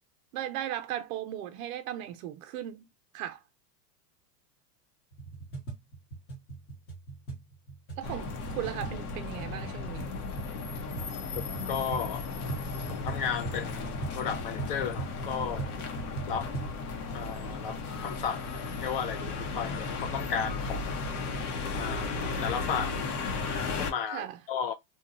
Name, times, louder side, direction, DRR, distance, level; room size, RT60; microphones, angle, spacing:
voice 1, 0.3-2.9 3.1-3.4 8.0-10.1 24.1-24.4, right 11 dB, 55° right, 0.7 m, -37 dB
sound 1, 5.1-16.8, right 4 dB, 20° left, 1.0 m, -41 dB
sound 2, 8.0-23.9, left 4 dB, 60° left, 0.9 m, -35 dB
voice 2, 11.7-12.2 12.9-15.7 16.3-16.5 17.1-18.5 18.8-21.1 21.7-23.0 23.8-24.7, left 7 dB, 40° left, 0.4 m, -34 dB
2.8 x 2.2 x 2.5 m
supercardioid pair, 160°, 49 cm